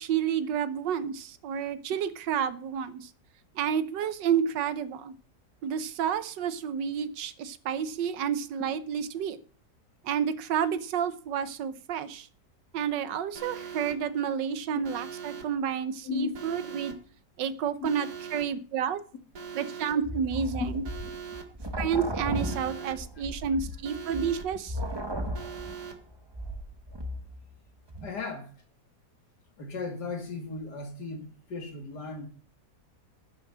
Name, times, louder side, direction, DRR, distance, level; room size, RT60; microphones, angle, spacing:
voice 1, 0.0-3.1 3.5-5.1 5.6-9.4 10.0-12.3 12.7-17.0 17.4-19.0 19.5-20.8 21.8-24.8, right 8 dB, 85° right, 14 dB, 1.5 m, -30 dB
Alarm, 13.4-13.9 14.8-15.4 16.3-16.9 17.8-18.4 19.3-19.9 20.8-21.4 22.3-22.9 23.8-24.4 25.3-25.9, right 7 dB, 65° right, 2.1 m, -41 dB
sound 1, 20.0-27.5 27.9-28.1, equal, 20° right, 1.0 m, -36 dB
voice 2, 21.0-21.4 22.9-23.1 28.0-28.5 29.6-32.3, left 4 dB, 70° left, 6 dB, 2.5 m, -36 dB
11.0 x 6.1 x 7.3 m, 0.40 s
omnidirectional pair, 1.9 m